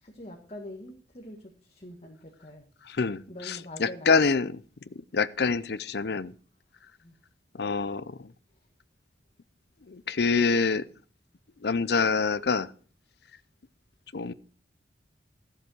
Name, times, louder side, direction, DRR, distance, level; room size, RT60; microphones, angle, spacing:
voice 1, 0.0-2.6 3.3-4.3 7.0-7.1, left 1 dB, 35° left, 1.7 m, -44 dB
voice 2, 2.9-4.5 5.1-6.3 7.5-8.3 9.9-10.8 11.6-12.7 14.1-14.3, left 4 dB, 60° left, 0.6 m, -26 dB
13.5 x 7.6 x 6.3 m
head